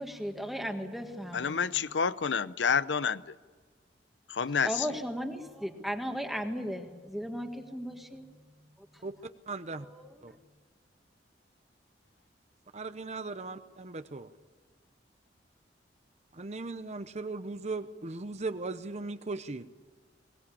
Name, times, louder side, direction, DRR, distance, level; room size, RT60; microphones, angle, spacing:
voice 1, 0.0-1.9 4.5-8.2 8.9-9.0 9.8-10.4, equal, ahead, 4 dB, 1.7 m, -37 dB
voice 2, 1.3-3.2 4.3-4.7, left 6 dB, 80° left, 16 dB, 0.7 m, -28 dB
voice 3, 9.0-9.9 10.2-10.3 12.7-14.3 16.3-19.7, right 3 dB, 40° right, 11 dB, 0.8 m, -38 dB
22.0 x 19.5 x 8.6 m, 1.5 s
head